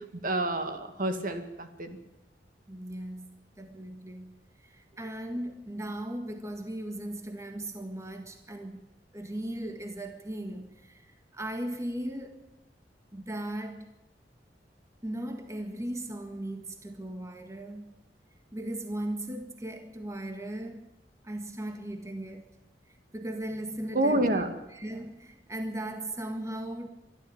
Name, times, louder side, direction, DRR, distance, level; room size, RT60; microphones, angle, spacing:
voice 1, 0.1-2.0 23.9-24.5, right 1 dB, 50° right, 2.1 m, -28 dB
voice 2, 2.7-8.9 9.1-12.5 13.1-13.9 15.0-17.9 18.5-20.8 21.2-22.4 22.9-24.4 24.7-26.9, right 1 dB, 15° right, 1.7 m, -37 dB
23.0 x 13.0 x 8.8 m
head